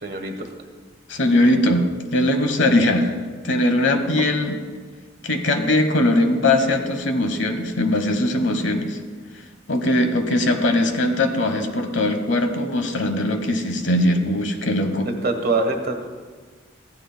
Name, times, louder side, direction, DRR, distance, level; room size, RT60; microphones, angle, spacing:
voice 1, 0.0-0.5 15.0-16.1, right 3 dB, 50° right, 4 dB, 1.3 m, -24 dB
voice 2, 1.1-3.1 3.4-4.6 5.2-9.0 9.7-15.1, left 1 dB, 70° left, 6 dB, 1.1 m, -20 dB
15.5 x 12.0 x 2.2 m, 1.5 s
head